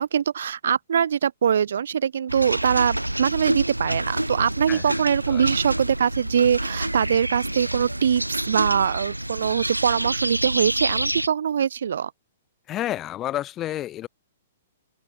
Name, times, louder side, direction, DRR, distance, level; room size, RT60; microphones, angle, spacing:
voice 1, 0.0-12.1, right 8 dB, 55° right, 0.4 m, -23 dB
sound 1, 2.3-11.3, right 1 dB, 85° right, 2.1 m, -28 dB
voice 2, 12.7-14.1, left 13 dB, 20° left, 3.7 m, -30 dB
open air
figure-of-eight pair, 115°, 0 cm